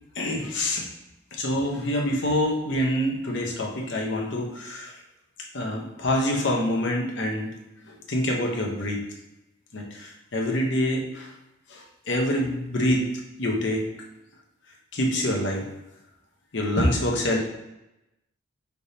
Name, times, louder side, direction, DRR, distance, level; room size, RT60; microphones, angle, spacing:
voice 1, 0.2-0.8 1.3-4.9 5.5-7.5 7.9-9.0 9.7-11.3 11.7-13.0 13.4-13.9 14.9-15.7 16.5-17.4, left 1 dB, 60° left, 0 dB, 0.9 m, -26 dB
5.3 x 3.4 x 2.8 m, 0.91 s
head